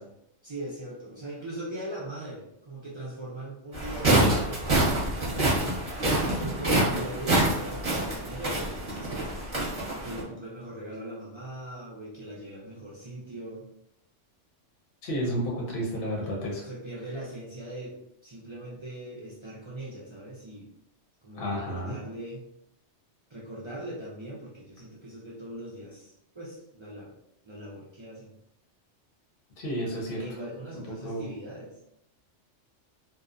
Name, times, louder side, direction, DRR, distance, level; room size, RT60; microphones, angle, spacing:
voice 1, 0.4-5.5 6.2-9.3 9.9-13.7 16.6-18.0 18.2-20.7 21.2-22.4 23.3-27.2 27.4-28.3 30.2-31.7, right 1 dB, 50° right, -6 dB, 0.3 m, -40 dB
sound 1, 3.7-10.2, right 1 dB, 35° right, 0.8 m, -26 dB
voice 2, 15.0-16.7 21.3-21.9 29.6-30.2 31.0-31.2, equal, 55° left, -3 dB, 0.8 m, -31 dB
2.6 x 2.0 x 2.4 m, 0.78 s
omnidirectional pair, 1.3 m